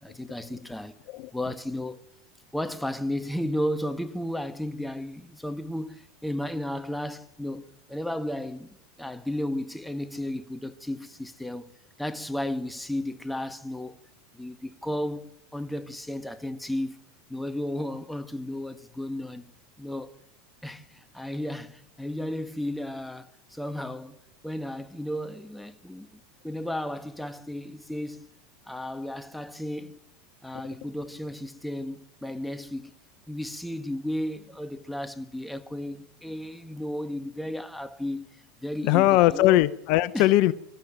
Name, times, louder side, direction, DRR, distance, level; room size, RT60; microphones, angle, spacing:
voice 1, 0.0-0.9 1.3-2.1 2.5-11.7 12.0-14.0 14.3-17.0 17.3-19.5 19.8-20.1 20.6-26.1 26.4-28.3 28.7-30.0 30.4-32.9 33.3-38.3 38.6-39.6 40.1-40.3, left 1 dB, 5° left, 1.5 m, -34 dB
voice 2, 38.8-40.5, left 16 dB, 60° left, 0.8 m, -20 dB
25.0 x 13.0 x 9.1 m
hypercardioid pair, 100°, 0 cm